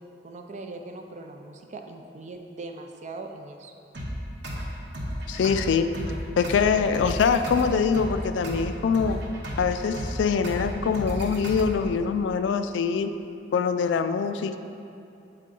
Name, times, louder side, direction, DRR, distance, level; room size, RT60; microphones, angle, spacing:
voice 1, 0.2-3.7, right 3 dB, 40° right, 4 dB, 0.5 m, -40 dB
sound 1, 3.9-11.9, equal, 70° right, 1.0 m, -34 dB
voice 2, 5.3-5.9 6.4-9.2 9.6-13.1 13.5-14.6, left 6 dB, 75° left, 10 dB, 0.3 m, -24 dB
7.4 x 4.5 x 3.8 m, 2.7 s
head